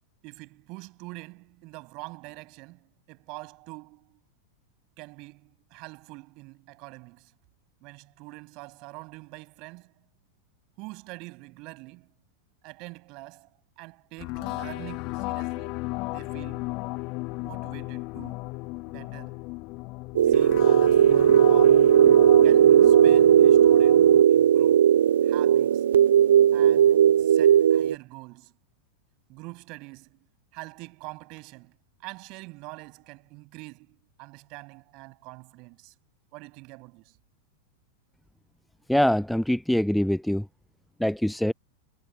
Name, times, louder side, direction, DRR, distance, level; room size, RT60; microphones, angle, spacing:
voice 1, 0.2-4.2 5.0-7.3 7.8-9.9 10.8-12.1 12.6-13.5 13.8-15.8 16.1-16.8 17.4-18.4 18.8-19.4 20.3-21.9 22.4-25.9 26.5-28.5 29.3-30.2 30.5-31.8 32.0-35.9 36.3-37.2, right 26 dB, 40° right, 7.2 m, -45 dB
sound 1, 14.2-24.2, left 25 dB, 40° left, 1.5 m, -34 dB
sound 2, 20.2-27.9, right 9 dB, 65° right, 0.3 m, -17 dB
voice 2, 38.9-40.5 41.0-41.5, left 1 dB, ahead, 0.5 m, -24 dB
figure-of-eight pair, 90°, 0 cm